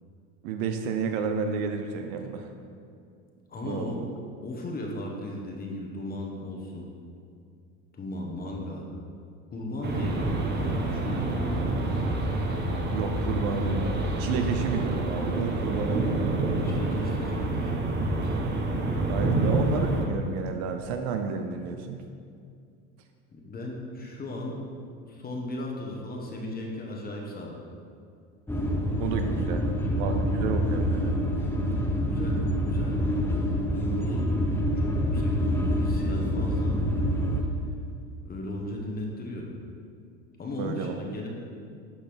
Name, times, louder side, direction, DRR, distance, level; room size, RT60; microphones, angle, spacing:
voice 1, 0.4-2.5 3.6-4.0 12.9-16.4 19.1-22.0 29.0-29.7 30.0-31.1 40.6-40.9, right 5 dB, 65° right, 6 dB, 0.6 m, -31 dB
voice 2, 3.5-4.0 4.4-6.9 7.9-8.9 9.5-11.8 16.6-17.7 19.3-19.5 23.3-24.6 25.1-27.6 32.0-33.0 33.7-34.3 34.7-36.8 38.2-39.5 40.4-41.3, left 1 dB, 25° left, -1 dB, 1.2 m, -36 dB
sound 1, 9.8-20.1, right 2 dB, 30° right, 1.0 m, -27 dB
sound 2, 28.5-37.4, equal, 5° left, 0.7 m, -26 dB
11.5 x 4.1 x 3.5 m, 2.3 s
supercardioid pair, 100°, 37 cm